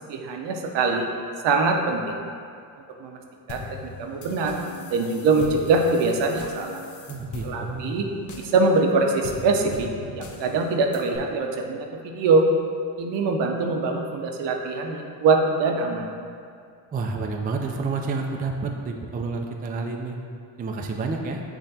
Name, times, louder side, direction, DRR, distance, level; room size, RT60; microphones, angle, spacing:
voice 1, 0.1-1.1 1.4-2.2 3.0-3.2 3.5-3.6 4.0-4.6 4.9-6.8 7.4-8.1 8.4-9.9 10.2-12.4 13.0-16.0, right 3 dB, 65° right, 2 dB, 0.7 m, -23 dB
sound 1, 3.5-11.2, left 4 dB, 40° left, 0.6 m, -40 dB
voice 2, 7.1-8.0 16.9-20.2 20.6-21.4, right 4 dB, 20° right, 2 dB, 0.3 m, -29 dB
6.8 x 2.5 x 2.7 m, 2.3 s
hypercardioid pair, 55°, 47 cm